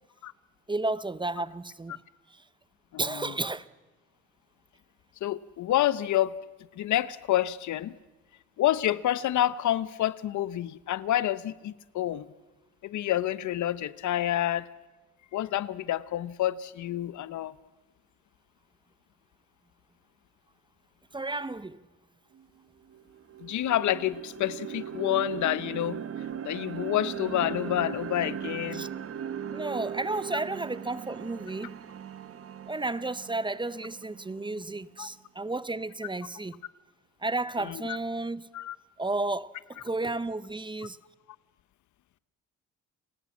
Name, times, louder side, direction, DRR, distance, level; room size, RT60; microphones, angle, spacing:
voice 1, 0.7-2.0 2.3-2.4 3.0-3.7 21.1-21.8 28.7-28.9 29.5-31.7 32.7-36.6 37.2-38.5 39.0-41.0, right 2 dB, 15° right, 0.8 m, -32 dB
voice 2, 2.9-3.3 5.2-6.4 6.7-7.9 8.6-12.3 12.8-14.7 15.3-17.5 23.4-26.0 26.4-28.9 35.0-35.1 37.6-37.8 38.5-38.8, left 13 dB, 75° left, 0.9 m, -28 dB
sound 1, 22.4-22.5 22.9-34.9, right 8 dB, 50° right, 1.3 m, -38 dB
30.0 x 19.0 x 7.3 m
cardioid pair, 90°, 30 cm